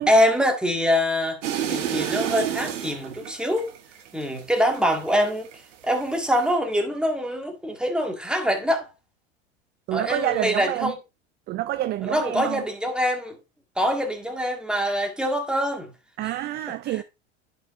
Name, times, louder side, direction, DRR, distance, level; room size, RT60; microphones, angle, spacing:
voice 1, 0.1-1.4 1.7-3.7 4.1-5.5 5.8-8.9 9.9-11.0 12.0-13.4 13.8-15.9 16.2-16.3, equal, ahead, 1.8 m, -24 dB
sound 1, 1.4-5.6 5.9-6.5, right 10 dB, 75° right, 1.4 m, -30 dB
voice 2, 9.9-10.9 11.5-12.6 16.2-17.0, right 15 dB, 30° right, 0.3 m, -28 dB
11.0 x 5.3 x 2.5 m
hypercardioid pair, 90°, 37 cm